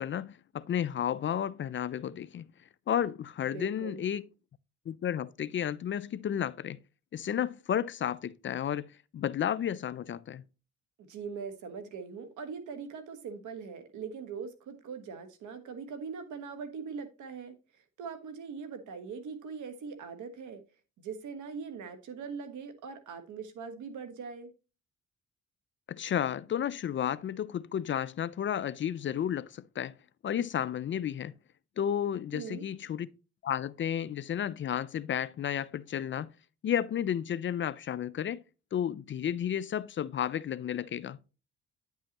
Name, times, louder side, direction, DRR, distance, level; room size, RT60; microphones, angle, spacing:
voice 1, 0.0-2.5 2.9-4.2 4.9-6.8 7.1-8.9 9.1-10.4 25.9-29.9 30.2-31.3 31.8-33.1 33.4-36.3 36.6-38.4 38.7-41.2, left 9 dB, 40° left, 0.4 m, -32 dB
voice 2, 3.5-4.0 11.0-20.6 21.0-24.5 32.3-32.6, right 5 dB, 75° right, 1.4 m, -41 dB
9.7 x 5.5 x 2.9 m
cardioid pair, 90°, 30 cm